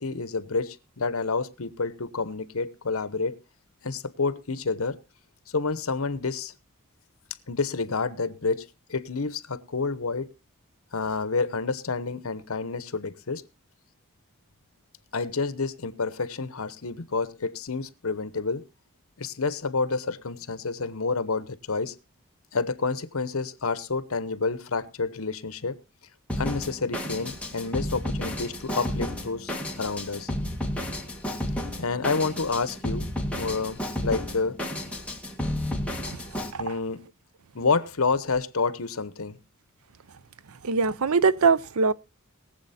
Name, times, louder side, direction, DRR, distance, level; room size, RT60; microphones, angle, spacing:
voice 1, 0.0-3.3 3.8-5.0 5.5-6.5 7.5-10.3 10.9-13.4 15.1-18.6 19.2-22.0 22.5-25.8 26.4-30.3 31.8-33.1 33.3-34.6 36.5-37.0 37.5-39.4, left 4 dB, 70° left, 1.0 m, -29 dB
Drum kit, 26.3-36.5, left 1 dB, 5° left, 2.0 m, -32 dB
voice 2, 40.6-41.9, right 4 dB, 85° right, 0.6 m, -21 dB
20.5 x 7.7 x 4.2 m
head